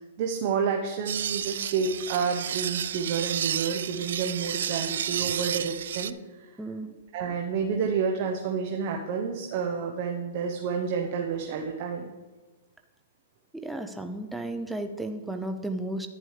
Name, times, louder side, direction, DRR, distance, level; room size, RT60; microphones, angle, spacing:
voice 1, 0.2-6.5 7.1-12.1, right 6 dB, 35° right, 1 dB, 0.8 m, -29 dB
sound 1, 1.1-6.1, right 9 dB, 70° right, 0.3 m, -31 dB
voice 2, 6.6-6.9 13.5-16.1, right 1 dB, 5° right, 5 dB, 0.4 m, -34 dB
11.0 x 9.4 x 3.3 m, 1.2 s
hypercardioid pair, 165°, 0 cm